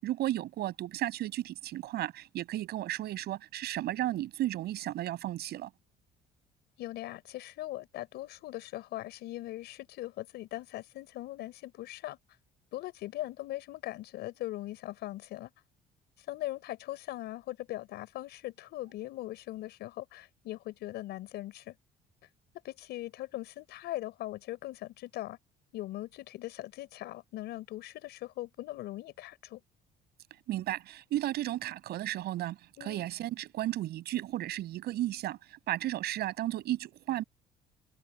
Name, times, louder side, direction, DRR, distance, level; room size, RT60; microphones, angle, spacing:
voice 1, 0.0-5.7 30.5-37.2, right 14 dB, 75° right, 6.2 m, -34 dB
voice 2, 6.8-12.2 12.7-15.5 16.3-21.7 22.6-25.4 25.7-29.6 32.8-33.1, left 16 dB, 80° left, 5.9 m, -40 dB
cardioid pair, 110°, 17 cm